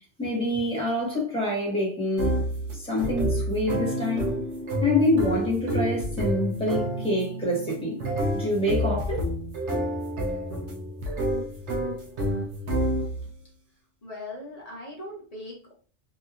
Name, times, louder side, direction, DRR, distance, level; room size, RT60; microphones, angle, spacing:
voice 1, 0.2-2.4 2.7-4.3 4.8-8.0 8.3-9.2, left 1 dB, 5° left, 1.3 m, -26 dB
sound 1, 2.2-13.3, right 1 dB, 75° right, 1.0 m, -29 dB
voice 2, 14.0-15.7, left 1 dB, 35° left, 1.1 m, -39 dB
3.2 x 2.7 x 2.4 m
omnidirectional pair, 1.2 m